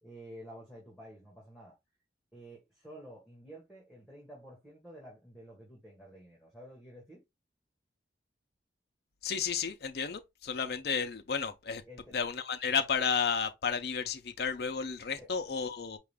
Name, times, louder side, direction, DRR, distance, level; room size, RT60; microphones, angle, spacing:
voice 1, 0.0-1.8 2.3-7.2 11.9-12.2 15.2-15.3, equal, ahead, 1.4 m, -51 dB
voice 2, 9.2-11.8 12.1-16.0, left 6 dB, 60° left, 0.5 m, -32 dB
4.8 x 2.4 x 3.5 m
head